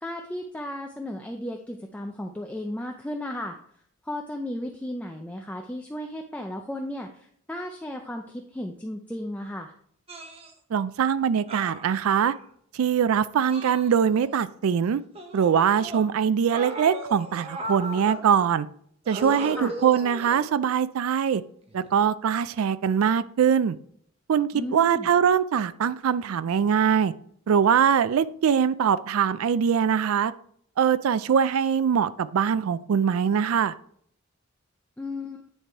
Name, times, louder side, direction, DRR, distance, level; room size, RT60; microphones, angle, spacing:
voice 1, 0.0-3.6 4.0-9.7 19.6-19.7 24.5-25.1 35.0-35.4, left 1 dB, 5° left, 0.4 m, -34 dB
sound 1, 10.1-10.5 11.5-12.4 13.5-14.4 15.2-16.0 16.5-18.2 19.1-20.6 21.7-21.9, right 1 dB, 30° right, 0.9 m, -37 dB
voice 2, 10.7-12.3 12.7-15.0 15.3-18.7 19.1-21.4 21.7-23.8 24.3-27.1 27.5-30.3 30.8-33.7, right 7 dB, 85° right, 0.4 m, -22 dB
9.9 x 3.3 x 4.5 m
head